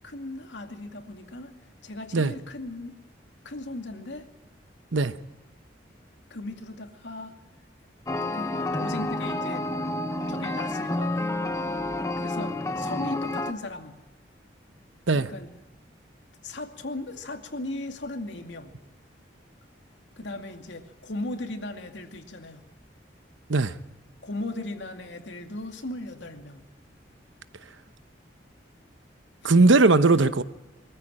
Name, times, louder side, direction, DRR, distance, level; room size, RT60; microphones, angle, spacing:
voice 1, 0.0-1.5 1.8-2.9 3.4-4.3 6.3-7.3 8.3-9.7 10.3-11.4 12.2-14.0 15.1-15.5 16.4-18.8 20.2-22.7 24.2-26.7 29.4-29.5, left 2 dB, 75° left, 2.3 m, -37 dB
sound 1, 8.1-13.5, left 2 dB, 15° left, 0.8 m, -29 dB
voice 2, 29.4-30.4, right 3 dB, 85° right, 0.9 m, -19 dB
23.0 x 14.5 x 8.9 m
head